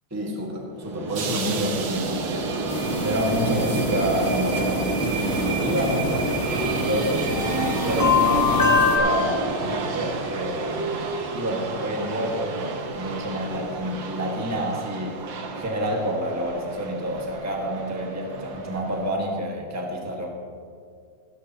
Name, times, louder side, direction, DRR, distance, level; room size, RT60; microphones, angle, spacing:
voice 1, 0.1-2.5 3.0-4.9 5.4-7.3 7.8-11.0 11.3-15.2 15.5-20.3, equal, 10° right, -1 dB, 1.4 m, -28 dB
sound 1, 0.8-19.1, right 4 dB, 80° right, 1.8 m, -30 dB
sound 2, 2.7-9.0, left 4 dB, 15° left, 1.1 m, -25 dB
16.5 x 13.5 x 2.9 m, 2.2 s
omnidirectional pair, 2.0 m